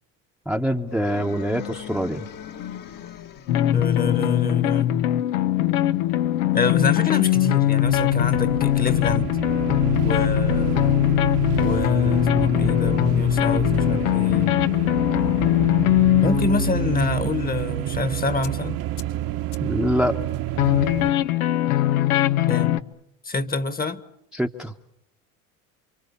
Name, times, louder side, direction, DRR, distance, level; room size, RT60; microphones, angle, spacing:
voice 1, 0.5-2.3 19.6-20.1 24.3-24.7, equal, ahead, 1.1 m, -24 dB
sound 1, 0.9-3.8, left 9 dB, 55° left, 1.9 m, -38 dB
sound 2, 3.5-17.2 18.4-18.5 19.0-19.1 19.5-19.6 20.6-22.8, left 13 dB, 80° left, 1.0 m, -21 dB
voice 2, 3.7-5.0 6.5-9.3 10.0-10.8 11.6-14.6 16.2-18.8 22.5-22.8 23.2-24.0, left 4 dB, 20° left, 1.4 m, -27 dB
sound 3, 7.8-21.1, right 14 dB, 55° right, 1.4 m, -29 dB
29.0 x 24.0 x 7.1 m
hypercardioid pair, 80°, 40 cm